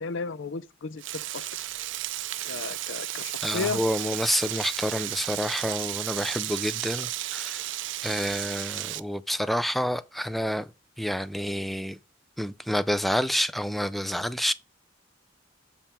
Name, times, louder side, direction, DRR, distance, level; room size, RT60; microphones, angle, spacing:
voice 1, 0.0-1.5 2.4-4.1, left 4 dB, 75° left, 0.5 m, -34 dB
Frying (food), 1.0-9.0, right 14 dB, 70° right, 0.5 m, -33 dB
voice 2, 3.4-7.7 8.0-10.7 11.0-12.0 12.4-14.5, equal, ahead, 0.4 m, -28 dB
7.3 x 5.4 x 4.4 m
head